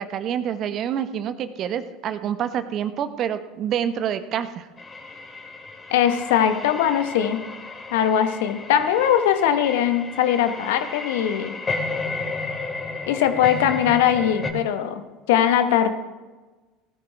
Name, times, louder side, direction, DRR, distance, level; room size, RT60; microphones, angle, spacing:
voice 1, 0.0-4.7, right 9 dB, 50° right, 11 dB, 1.0 m, -27 dB
sound 1, 4.8-14.5, left 3 dB, 25° left, 2.4 m, -33 dB
voice 2, 5.9-7.4 7.9-11.5 13.1-15.0 15.3-15.9, left 9 dB, 70° left, 9 dB, 1.2 m, -20 dB
18.5 x 13.0 x 3.5 m, 1.2 s
hypercardioid pair, 70°, 0 cm